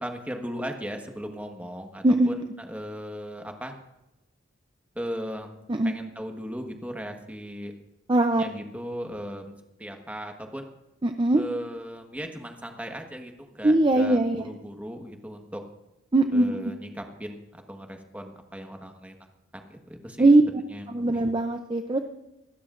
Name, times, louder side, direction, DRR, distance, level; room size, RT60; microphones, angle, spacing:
voice 1, 0.0-3.7 4.9-5.5 5.8-7.7 8.4-9.5 9.8-10.7 11.3-14.2 14.4-15.6 16.3-19.2 19.7-20.3 20.7-21.1, equal, 5° right, 4 dB, 1.4 m, -37 dB
voice 2, 8.1-8.4 11.0-11.4 13.6-14.5 16.1-16.6 20.2-20.4 20.9-22.0, right 2 dB, 25° right, 6 dB, 0.6 m, -20 dB
26.5 x 13.0 x 2.5 m, 0.95 s
head